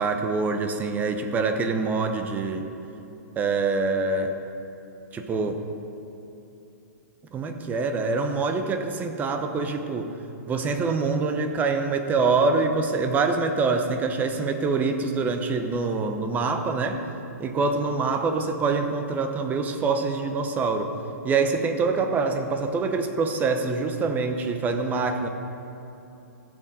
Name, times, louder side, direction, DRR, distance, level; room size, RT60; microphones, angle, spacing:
voice 1, 0.0-2.7 3.4-4.4 5.1-5.6 7.3-10.1 10.5-17.0 17.4-20.9 21.2-25.3, right 4 dB, 20° right, 7 dB, 0.8 m, -25 dB
15.5 x 6.3 x 5.5 m, 2.8 s
hypercardioid pair, 140°, 9 cm